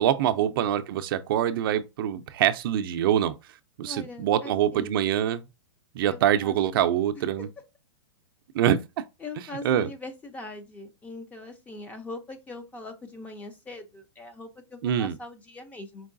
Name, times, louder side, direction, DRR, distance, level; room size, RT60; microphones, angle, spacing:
voice 1, 0.0-3.4 3.8-5.4 5.9-7.5 8.5-9.0 9.6-9.9 14.8-15.2, right 10 dB, 50° right, 0.4 m, -24 dB
voice 2, 3.8-5.0 6.1-7.2 9.2-16.1, left 2 dB, 10° left, 0.4 m, -42 dB
4.6 x 3.1 x 2.5 m
hypercardioid pair, 155°, 15 cm